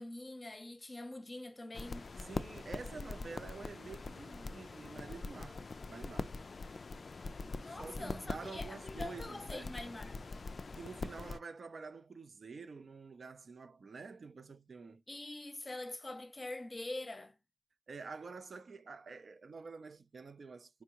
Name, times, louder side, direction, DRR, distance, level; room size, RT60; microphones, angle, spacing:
voice 1, 0.0-2.1 7.6-10.2 15.1-17.3, left 2 dB, 20° left, 0.7 m, -44 dB
sound 1, 1.7-11.4, left 3 dB, 45° left, 0.3 m, -43 dB
voice 2, 2.2-6.4 7.6-9.8 10.8-15.0 17.9-20.8, right 4 dB, 50° right, 0.4 m, -48 dB
4.6 x 3.6 x 2.8 m
wide cardioid pair, 180°, 0 cm